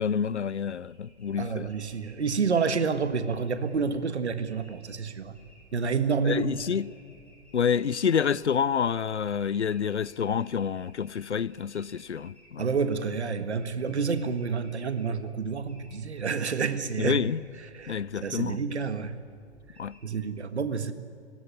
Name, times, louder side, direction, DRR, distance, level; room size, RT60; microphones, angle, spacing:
voice 1, 0.0-1.7 6.2-6.9 7.5-12.6 17.0-17.4 17.9-18.6 19.8-20.0, left 7 dB, 85° left, 0.6 m, -28 dB
sound 1, 0.7-20.0, equal, 5° left, 7.3 m, -58 dB
voice 2, 1.4-5.3 5.7-6.5 12.6-17.2 17.7-19.2 20.0-20.9, right 5 dB, 75° right, 1.7 m, -29 dB
20.0 x 16.0 x 9.7 m
figure-of-eight pair, 115°, 34 cm